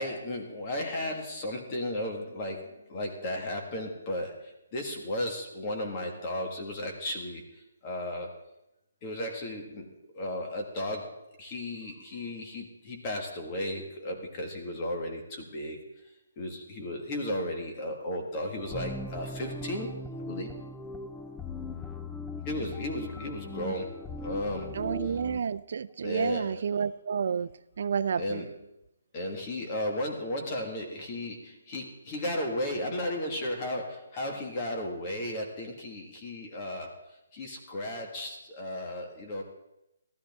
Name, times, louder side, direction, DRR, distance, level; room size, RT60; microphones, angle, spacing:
voice 1, 0.0-7.4 7.8-8.3 9.0-15.8 16.4-19.9 20.2-20.5 22.4-25.1 26.0-26.8 28.1-28.7 29.1-37.0 37.3-39.4, left 1 dB, 25° left, 2 dB, 1.7 m, -35 dB
sound 1, 18.6-25.4, left 2 dB, 5° left, 0.5 m, -39 dB
voice 2, 24.7-27.5 27.8-28.5, right 6 dB, 55° right, 15 dB, 0.4 m, -30 dB
14.0 x 13.0 x 3.6 m, 0.87 s
hypercardioid pair, 165°, 0 cm